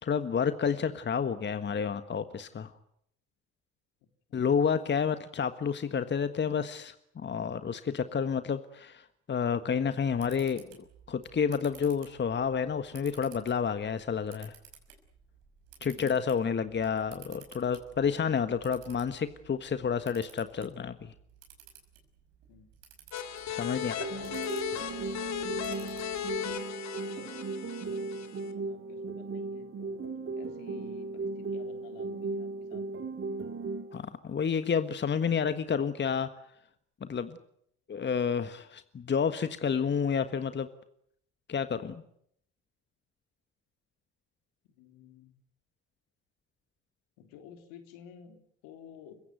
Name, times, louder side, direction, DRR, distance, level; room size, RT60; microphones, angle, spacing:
voice 1, 0.0-2.7 4.3-10.6 11.1-14.5 15.8-21.1 23.5-24.0 33.9-36.3 37.0-37.4 37.9-40.7 41.5-42.0, left 6 dB, 30° left, 11 dB, 1.5 m, -30 dB
Camera, 9.8-26.6, right 8 dB, 65° right, 5.8 m, -56 dB
sound 1, 23.1-28.5, left 9 dB, 50° left, 2.6 m, -37 dB
voice 2, 23.7-24.6 25.3-26.0 26.3-26.5 27.8-32.9 44.8-45.3 47.2-49.2, left 8 dB, 65° left, 6 dB, 3.5 m, -52 dB
sound 2, 24.0-34.0, right 3 dB, 35° right, 2.8 m, -37 dB
30.0 x 16.5 x 9.2 m, 0.71 s
hypercardioid pair, 55°, 35 cm